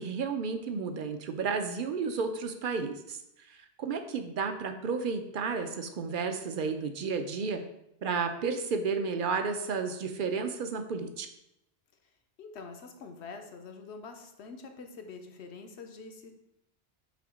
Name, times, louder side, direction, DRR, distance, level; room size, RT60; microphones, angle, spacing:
voice 1, 0.0-3.2 3.5-7.6 8.0-11.3, right 5 dB, 55° right, 7 dB, 0.7 m, -32 dB
voice 2, 12.4-16.3, left 4 dB, 70° left, 5 dB, 1.0 m, -45 dB
6.8 x 2.8 x 5.0 m, 0.84 s
omnidirectional pair, 1.2 m